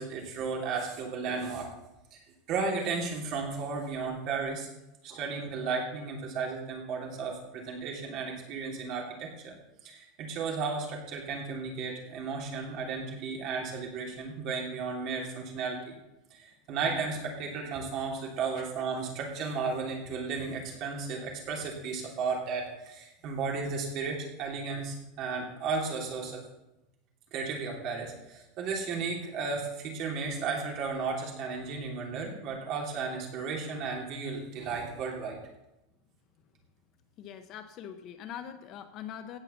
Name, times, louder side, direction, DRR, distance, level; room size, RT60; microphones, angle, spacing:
voice 1, 0.0-1.7 2.1-2.2 2.5-4.7 5.0-9.5 9.8-15.9 16.3-26.4 27.3-35.4, right 4 dB, 35° right, 0 dB, 3.0 m, -34 dB
voice 2, 37.2-39.4, left 9 dB, 30° left, 9 dB, 0.7 m, -42 dB
17.0 x 5.7 x 7.1 m, 0.93 s
supercardioid pair, 180°, 0 cm